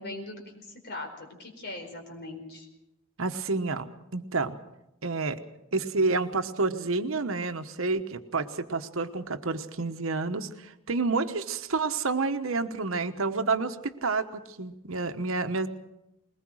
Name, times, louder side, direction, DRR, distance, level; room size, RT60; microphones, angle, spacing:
voice 1, 0.0-2.7, left 2 dB, 55° left, 3 dB, 4.6 m, -40 dB
voice 2, 3.2-4.6 5.0-5.4 5.7-15.7, right 3 dB, 70° right, 8 dB, 1.1 m, -29 dB
21.0 x 20.0 x 6.3 m, 0.90 s
head